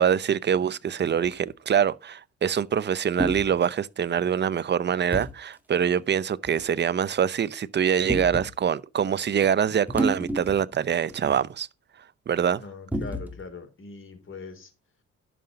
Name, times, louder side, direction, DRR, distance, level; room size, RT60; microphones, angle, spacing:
voice 1, 0.0-11.7 12.3-12.6, right 8 dB, 35° right, 0.7 m, -24 dB
sound 1, 1.2-1.5 3.2-3.5 5.1-5.3 6.4-6.6 8.1-8.5 9.9-10.8 11.1-11.2 12.9-13.5, right 1 dB, 5° right, 1.9 m, -29 dB
voice 2, 12.6-14.7, left 4 dB, 40° left, 3.5 m, -41 dB
11.0 x 5.9 x 5.1 m
cardioid pair, 90°, 30 cm